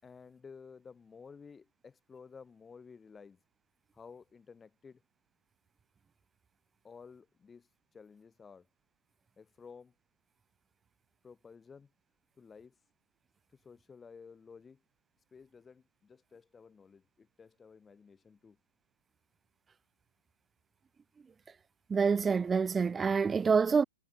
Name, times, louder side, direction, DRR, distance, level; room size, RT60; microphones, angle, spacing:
voice 1, 0.0-3.4 3.9-5.0 6.8-7.7 7.9-8.7 9.4-9.9 11.2-11.9 12.4-12.7 13.6-14.8 15.3-18.6, left 5 dB, 15° left, 4.6 m, -53 dB
voice 2, 21.9-23.8, right 5 dB, 15° right, 0.4 m, -27 dB
hypercardioid pair, 130°, 0 cm